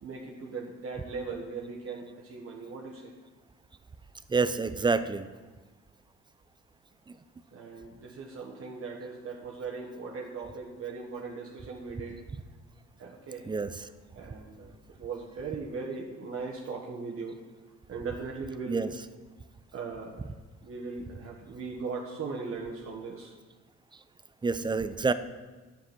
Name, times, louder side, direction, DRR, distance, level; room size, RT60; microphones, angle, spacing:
voice 1, 0.0-3.1 7.5-12.2 13.0-13.5 14.1-17.4 17.9-18.9 19.7-20.3 20.6-23.3, right 4 dB, 50° right, -2 dB, 1.4 m, -39 dB
voice 2, 4.3-5.3 13.5-13.7 18.7-18.9 24.4-25.1, right 4 dB, 15° right, 13 dB, 0.4 m, -27 dB
10.0 x 7.4 x 6.0 m, 1.3 s
cardioid pair, 130°, 30 cm